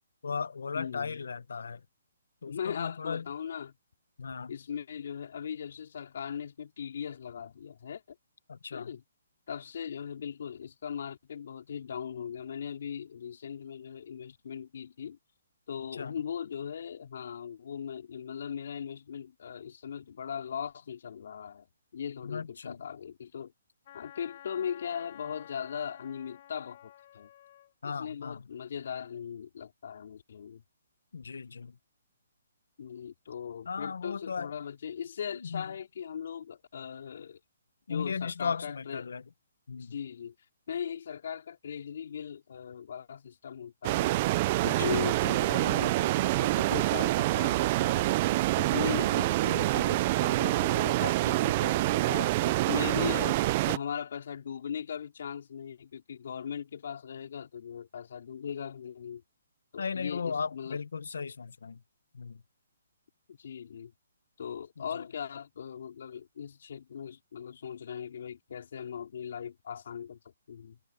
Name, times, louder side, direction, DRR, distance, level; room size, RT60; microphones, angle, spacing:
voice 1, 0.2-1.8 2.4-3.2 4.2-4.5 8.5-8.9 15.9-16.1 22.2-22.8 27.8-28.5 31.1-31.8 33.7-34.5 35.3-35.6 37.9-39.2 39.7-39.9 44.6-45.0 59.8-61.8 62.1-62.4 64.8-65.1, left 5 dB, 80° left, 1.2 m, -36 dB
voice 2, 0.7-1.2 2.5-3.8 4.5-8.2 8.7-9.0 9.5-15.2 15.7-21.7 21.9-23.5 23.9-27.3 27.8-30.6 32.8-37.4 37.9-39.1 39.7-40.3 40.7-44.1 44.6-48.1 48.6-59.2 59.7-60.8 63.3-63.9 64.4-70.2 70.5-70.8, left 8 dB, 60° left, 4.1 m, -39 dB
Wind instrument woodwind instrument, 23.9-27.7, left 12 dB, 45° left, 3.1 m, -52 dB
sound 1, 43.8-53.8, right 18 dB, 30° right, 0.4 m, -26 dB
hypercardioid pair, 165°, 0 cm